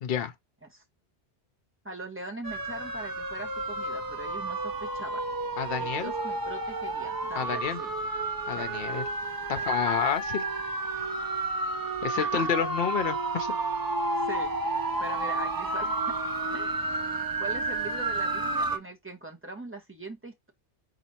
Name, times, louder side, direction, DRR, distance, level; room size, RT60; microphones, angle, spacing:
voice 1, 0.0-0.3 5.6-6.1 7.4-7.8 8.5-9.0 9.5-10.4 12.0-13.6, left 8 dB, 60° left, 0.9 m, -29 dB
voice 2, 1.8-5.2 5.8-7.9 8.5-8.8 9.5-9.6 12.2-12.5 12.8-12.9 14.2-14.5 15.0-15.9 16.5-17.0 17.4-20.5, right 2 dB, 10° right, 1.1 m, -41 dB
sound 1, 2.4-18.8, right 2 dB, 30° right, 0.4 m, -31 dB
4.1 x 2.9 x 4.3 m
omnidirectional pair, 1.2 m